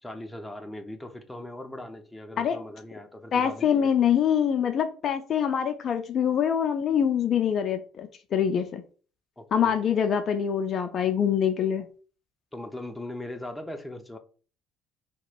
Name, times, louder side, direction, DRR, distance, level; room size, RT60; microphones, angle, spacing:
voice 1, 0.0-3.9 9.4-9.8 12.5-14.2, left 1 dB, 10° left, 0.7 m, -39 dB
voice 2, 3.3-8.8 9.5-11.9, left 8 dB, 50° left, 0.4 m, -25 dB
4.3 x 3.0 x 2.4 m
hypercardioid pair, 60°, 0 cm